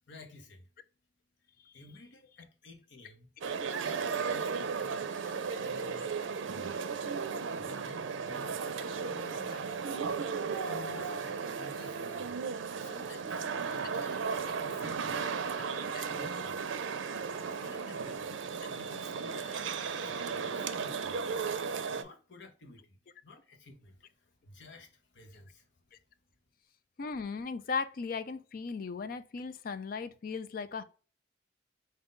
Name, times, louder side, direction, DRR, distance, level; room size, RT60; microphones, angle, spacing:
voice 1, 0.1-0.7 1.7-3.3 3.6-6.1 6.5-6.8 7.6-9.6 10.5-12.4 12.8-13.4 13.7-16.7 17.4-18.3 18.7-19.6 19.9-21.2 21.9-25.8, left 3 dB, 70° left, 1.0 m, -53 dB
sound 1, 3.4-22.0, right 5 dB, 85° right, 0.5 m, -35 dB
voice 2, 27.0-30.8, left 5 dB, 50° left, 0.4 m, -37 dB
3.8 x 2.7 x 3.6 m
head